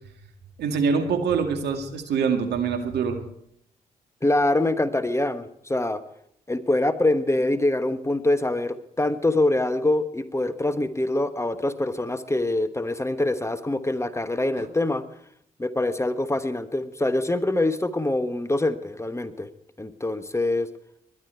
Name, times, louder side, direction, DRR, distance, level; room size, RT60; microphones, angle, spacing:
voice 1, 0.6-3.2 14.6-14.7, right 5 dB, 70° right, 5 dB, 2.0 m, -24 dB
voice 2, 4.2-6.0 6.5-15.0 15.6-19.5 19.8-20.7, left 2 dB, 15° left, 12 dB, 1.2 m, -24 dB
21.0 x 11.0 x 4.6 m, 0.72 s
hypercardioid pair, 45°, 18 cm